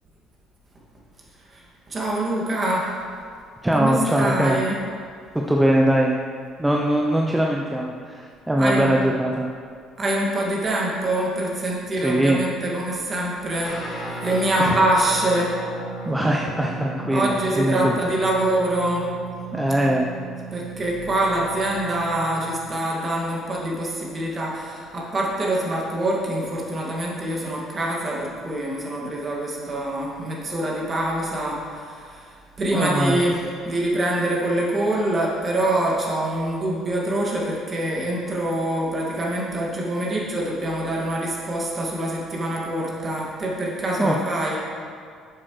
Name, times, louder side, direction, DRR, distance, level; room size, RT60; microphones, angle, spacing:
voice 1, 1.5-2.9 3.7-4.9 8.6-8.9 10.0-15.6 17.1-19.1 20.5-32.3 32.6-44.6, right 1 dB, 35° right, -3 dB, 2.3 m, -25 dB
voice 2, 3.6-4.6 5.3-6.2 6.6-9.5 12.0-12.4 14.6-14.7 16.1-17.9 19.5-20.1 32.7-33.2 44.0-44.2, right 1 dB, 10° right, -1 dB, 0.7 m, -21 dB
Guitar, 13.6-22.7, right 3 dB, 55° left, 2.2 m, -35 dB
10.5 x 7.3 x 3.3 m, 2.2 s
hypercardioid pair, 55°, 0 cm